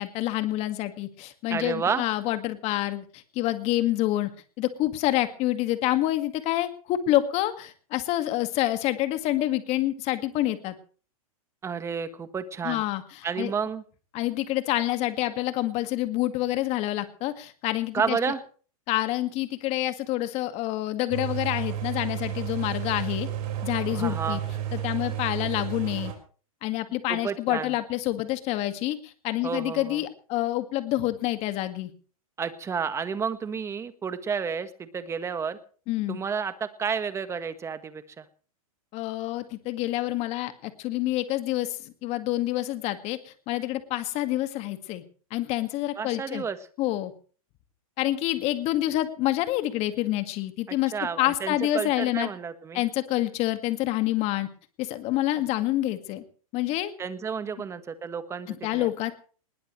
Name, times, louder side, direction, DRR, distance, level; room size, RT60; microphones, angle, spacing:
voice 1, 0.0-4.3 4.6-10.8 12.6-13.0 13.4-13.5 14.1-18.2 18.9-23.3 23.6-24.4 24.7-26.1 26.6-31.9 35.9-36.2 38.9-45.0 45.3-46.5 46.8-47.1 48.0-52.3 52.7-54.5 54.8-56.2 56.5-56.9 58.5-59.1, left 15 dB, 35° left, 9 dB, 2.0 m, -27 dB
voice 2, 1.5-2.0 11.6-12.8 13.2-13.8 17.9-18.4 23.9-24.4 27.1-27.7 29.4-30.0 32.4-35.6 36.1-38.2 46.0-46.6 50.9-52.8 57.0-58.9, right 6 dB, 15° right, 12 dB, 1.5 m, -31 dB
sound 1, 21.1-26.1, right 11 dB, 40° right, 5.4 m, -32 dB
20.5 x 20.5 x 3.3 m, 0.41 s
hypercardioid pair, 140°, 19 cm